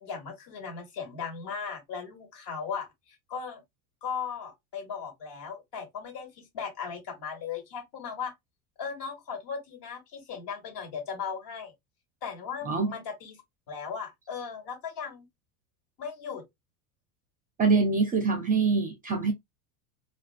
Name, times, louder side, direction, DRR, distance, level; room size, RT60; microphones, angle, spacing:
voice 1, 0.0-3.6 4.0-8.3 8.8-11.7 12.2-13.4 13.7-15.3 16.0-16.4, left 6 dB, 55° left, 1.4 m, -37 dB
voice 2, 17.6-19.3, right 4 dB, 20° right, 0.4 m, -24 dB
2.4 x 2.3 x 2.4 m
hypercardioid pair, 100°, 49 cm